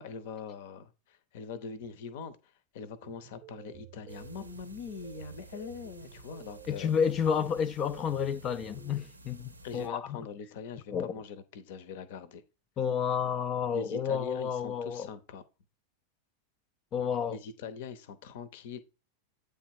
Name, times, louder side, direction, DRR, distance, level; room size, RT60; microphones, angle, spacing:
voice 1, 0.0-6.9 9.6-12.4 13.7-15.4 17.3-18.8, left 6 dB, 50° left, 0.8 m, -42 dB
sound 1, 3.0-9.1, right 13 dB, 35° right, 0.6 m, -52 dB
sound 2, 4.1-9.9, right 1 dB, 80° right, 0.7 m, -53 dB
voice 2, 6.7-10.2 10.9-11.1 12.8-15.1 16.9-17.4, left 7 dB, 30° left, 0.4 m, -30 dB
8.5 x 3.3 x 4.7 m
figure-of-eight pair, 90°, 0 cm